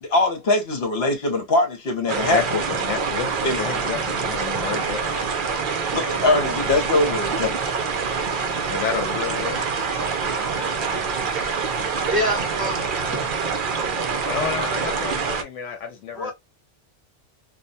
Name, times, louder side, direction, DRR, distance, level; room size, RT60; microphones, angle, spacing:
voice 1, 0.0-2.4 3.4-3.6 5.9-7.6, left 2 dB, 60° left, 1.0 m, -22 dB
sound 1, 2.1-15.4, right 5 dB, 60° right, 0.6 m, -26 dB
voice 2, 2.3-5.3 8.7-9.7 14.3-16.3, left 8 dB, 85° left, 0.9 m, -30 dB
voice 3, 12.1-13.2 16.2-16.3, equal, 20° right, 1.1 m, -26 dB
2.3 x 2.2 x 2.5 m
omnidirectional pair, 1.2 m